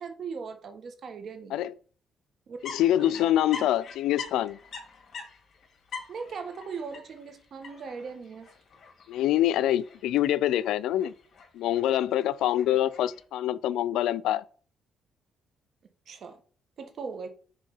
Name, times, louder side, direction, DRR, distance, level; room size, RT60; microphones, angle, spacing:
voice 1, 0.0-1.6 2.5-2.6 3.0-3.3 3.6-3.7 6.1-8.5 16.1-16.4 16.8-17.3, right 5 dB, 55° right, 1.4 m, -39 dB
voice 2, 2.6-4.6 9.1-11.1 11.5-14.4, left 12 dB, 85° left, 0.4 m, -25 dB
sound 1, 2.6-13.2, left 5 dB, 55° left, 2.3 m, -45 dB
6.4 x 3.6 x 5.5 m
cardioid pair, 90°, 0 cm